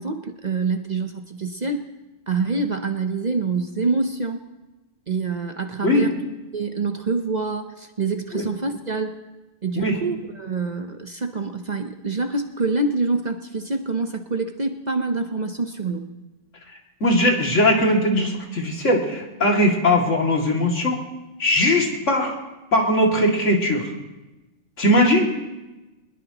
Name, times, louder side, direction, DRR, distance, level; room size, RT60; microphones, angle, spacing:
voice 1, 0.0-1.9 2.3-4.4 5.1-6.1 6.5-9.1 9.6-16.1, right 3 dB, 40° right, 5 dB, 0.9 m, -26 dB
voice 2, 17.0-21.0 21.4-22.4 22.7-23.9 24.8-25.3, left 1 dB, 70° left, 0 dB, 2.8 m, -19 dB
22.5 x 20.5 x 3.0 m, 1.1 s
omnidirectional pair, 1.3 m